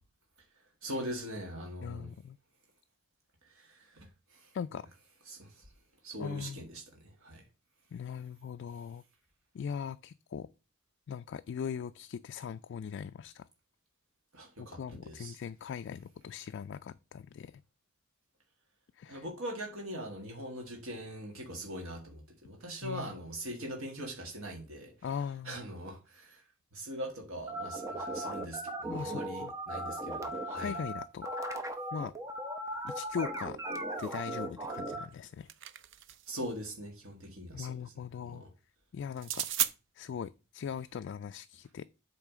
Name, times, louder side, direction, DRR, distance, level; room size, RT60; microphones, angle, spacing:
voice 1, 0.8-2.1 3.5-4.5 5.3-5.6 6.0-7.4 14.3-15.4 19.1-24.9 25.4-26.4 26.7-30.7 36.3-37.8 38.2-38.5, equal, 90° right, 1.6 m, -42 dB
voice 2, 1.8-2.4 4.5-4.9 6.2-6.6 7.9-9.0 9.5-10.5 11.1-13.5 14.6-17.6 19.0-19.3 22.8-23.2 25.0-25.7 28.9-29.5 30.6-31.3 31.9-32.1 32.8-33.6 34.0-35.5 37.5-38.4 38.9-39.5 40.0-41.9, left 7 dB, 60° left, 0.3 m, -40 dB
sound 1, 27.5-35.1, right 1 dB, 15° right, 0.9 m, -37 dB
sound 2, 35.1-36.4 39.2-39.7, right 12 dB, 60° right, 0.6 m, -34 dB
8.4 x 3.2 x 6.0 m
head